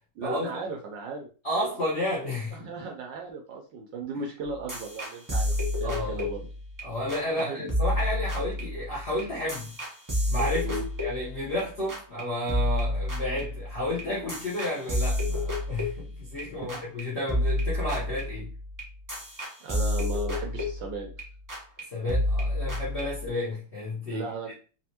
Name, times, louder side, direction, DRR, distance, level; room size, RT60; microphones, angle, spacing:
voice 1, 0.2-1.3 2.5-6.4 7.4-7.7 10.6-10.9 16.7-16.8 19.6-21.1 24.1-24.5, right 4 dB, 75° right, 1.1 m, -36 dB
voice 2, 1.4-2.6 5.8-6.2 6.8-9.7 10.3-18.5 21.9-24.3, left 1 dB, 60° left, 0.6 m, -31 dB
sound 1, 4.4-6.8 7.1-7.4 7.7-11.6 11.9-12.2 12.5-16.4 16.7-17.0 17.3-21.2 21.5-21.8 22.1-23.3, left 1 dB, 30° right, 0.3 m, -30 dB
4.1 x 2.1 x 2.8 m
omnidirectional pair, 2.4 m